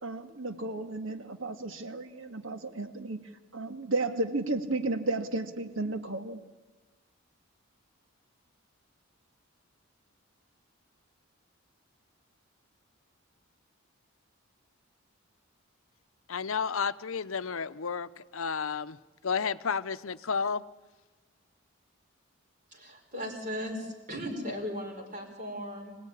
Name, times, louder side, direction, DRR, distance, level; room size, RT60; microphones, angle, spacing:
voice 1, 0.0-3.2 3.5-6.4, right 2 dB, 65° right, 1.8 m, -33 dB
voice 2, 16.3-19.0 19.2-20.6, left 5 dB, 75° left, 0.8 m, -31 dB
voice 3, 22.7-26.0, equal, 35° right, 5.0 m, -37 dB
25.5 x 17.5 x 10.0 m
head